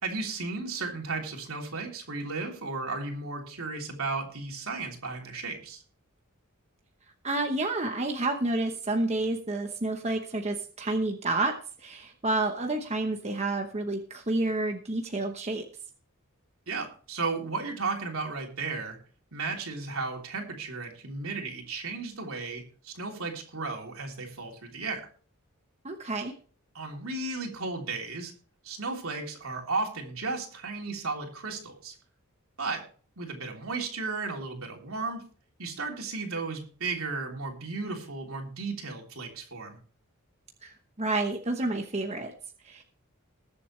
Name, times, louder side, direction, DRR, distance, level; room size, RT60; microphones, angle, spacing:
voice 1, 0.0-5.8 16.7-19.0 19.3-25.0 26.7-28.3 28.6-31.9 32.6-32.8 33.2-35.2 35.6-39.8, right 3 dB, 70° right, 1 dB, 3.2 m, -34 dB
voice 2, 7.2-15.6 25.8-26.3 40.6-42.3 42.6-42.8, right 2 dB, 30° right, 4 dB, 1.0 m, -29 dB
20.5 x 7.7 x 3.2 m, 0.43 s
head